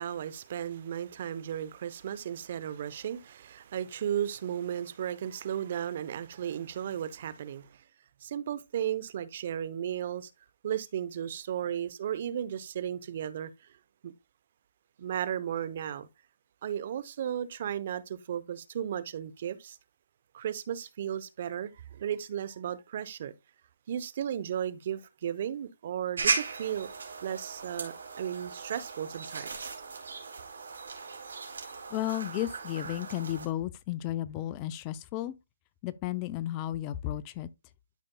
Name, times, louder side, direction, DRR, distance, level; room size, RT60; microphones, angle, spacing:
voice 1, 0.0-7.8 8.2-10.3 10.6-13.7 14.0-14.1 15.0-16.1 16.6-19.8 20.3-23.3 23.9-26.9 27.2-29.8, right 9 dB, 50° right, 0.7 m, -35 dB
sound 1, 26.2-33.5, right 5 dB, 75° right, 3.1 m, -36 dB
voice 2, 31.9-35.3 35.8-37.5, left 13 dB, 25° left, 0.5 m, -33 dB
12.5 x 5.2 x 2.2 m
hypercardioid pair, 150°, 0 cm